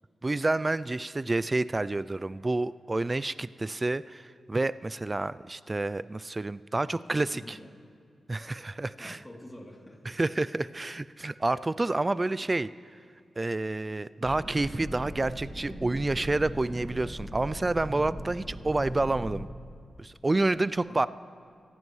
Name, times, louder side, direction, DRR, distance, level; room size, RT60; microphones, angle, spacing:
voice 1, 0.2-7.6 8.3-9.2 10.1-12.7 13.4-19.5 20.0-21.1, right 2 dB, 30° right, 16 dB, 0.3 m, -29 dB
voice 2, 6.8-7.9 8.5-8.7 9.0-10.2 20.5-21.1, left 1 dB, 15° left, -2 dB, 3.0 m, -48 dB
sound 1, 14.2-19.5, equal, 10° right, 2.0 m, -39 dB
24.5 x 16.0 x 3.2 m, 2.3 s
cardioid pair, 65°, 0 cm